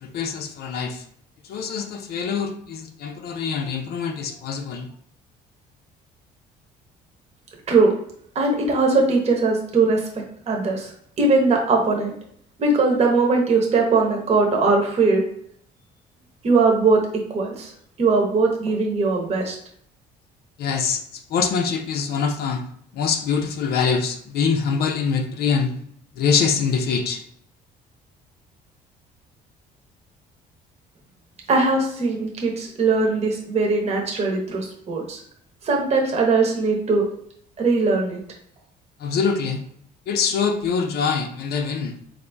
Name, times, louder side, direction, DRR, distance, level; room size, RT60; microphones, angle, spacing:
voice 1, 0.0-1.0 1.4-4.9 20.6-22.7 22.9-25.7 26.2-27.2 39.0-39.6 40.1-42.0, left 5 dB, 70° left, 5 dB, 0.5 m, -24 dB
voice 2, 8.3-10.0 10.5-10.9 11.2-12.1 12.6-15.2 16.4-17.0 17.3-17.7 18.0-19.5 31.5-35.2 35.6-37.0 37.6-38.2, right 3 dB, 40° right, 0 dB, 1.0 m, -20 dB
4.0 x 2.6 x 3.4 m, 0.65 s
cardioid pair, 110°, 17 cm